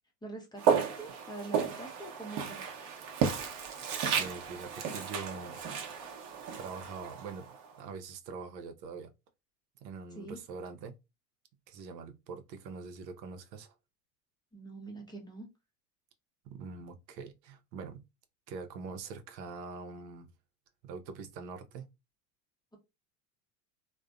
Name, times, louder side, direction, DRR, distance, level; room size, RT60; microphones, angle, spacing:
voice 1, 0.2-2.6 10.1-10.4 14.5-15.5, right 2 dB, 10° left, 0.6 m, -44 dB
Walk footsteps, 0.6-7.7, right 7 dB, 45° right, 0.7 m, -33 dB
voice 2, 3.9-5.6 6.6-9.1 9.8-10.9 11.7-13.7 16.4-18.0 18.5-20.3 20.8-21.9, right 4 dB, 80° right, 0.7 m, -44 dB
2.4 x 2.2 x 2.3 m
hypercardioid pair, 90°, 50 cm